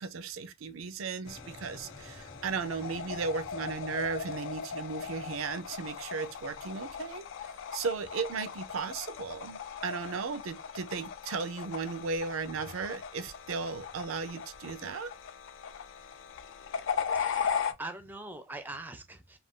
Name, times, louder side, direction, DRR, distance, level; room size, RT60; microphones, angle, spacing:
voice 1, 0.0-7.2 7.7-15.1, right 5 dB, 85° right, 0.5 m, -36 dB
sound 1, 1.3-17.7, left 7 dB, 70° left, 0.4 m, -38 dB
sound 2, 1.3-7.1, left 1 dB, 20° left, 0.7 m, -54 dB
voice 2, 17.1-19.4, right 2 dB, 10° right, 0.4 m, -43 dB
2.4 x 2.3 x 3.6 m
head